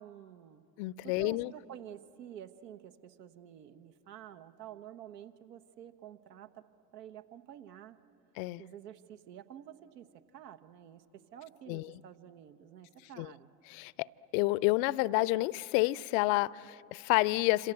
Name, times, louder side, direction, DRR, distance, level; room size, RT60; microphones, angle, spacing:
voice 1, 0.0-0.6 1.0-6.6 6.9-8.0 8.5-10.1 10.3-13.5, right 10 dB, 70° right, 1.3 m, -50 dB
voice 2, 0.8-1.5 8.4-8.6 11.7-11.9 13.2-13.3 13.7-14.1 14.3-17.7, left 21 dB, 55° left, 0.6 m, -29 dB
27.5 x 26.5 x 7.9 m
hypercardioid pair, 75°, 50 cm